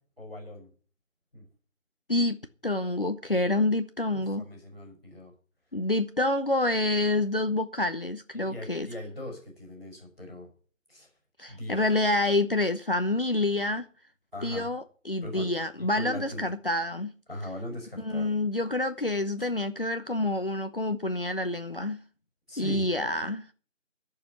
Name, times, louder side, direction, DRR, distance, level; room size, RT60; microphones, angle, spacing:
voice 1, 0.2-0.7 1.3-1.4 4.1-5.3 8.3-10.5 10.9-11.1 11.5-11.9 14.3-14.7 15.2-15.5 15.8-16.5 17.3-18.3 22.5-22.8, left 1 dB, ahead, 2.6 m, -40 dB
voice 2, 2.6-4.5 5.7-8.9 11.4-13.9 14.4-17.1 18.0-22.0 22.6-23.5, left 2 dB, 45° left, 0.8 m, -27 dB
11.0 x 6.8 x 9.1 m
figure-of-eight pair, 175°, 39 cm